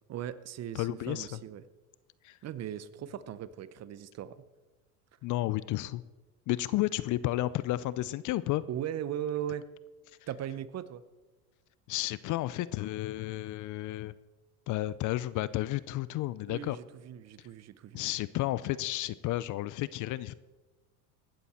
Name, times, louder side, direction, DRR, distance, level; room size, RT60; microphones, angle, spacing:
voice 1, 0.1-1.7 2.4-4.4 8.7-9.7 10.3-11.0 16.5-18.0, right 10 dB, 35° right, 16 dB, 0.8 m, -38 dB
voice 2, 0.7-1.3 2.2-2.4 5.2-6.0 6.5-8.6 11.9-14.1 14.7-16.8 17.9-20.3, left 16 dB, 45° left, 18 dB, 0.6 m, -32 dB
17.0 x 12.5 x 4.4 m, 1.2 s
hypercardioid pair, 95°, 45 cm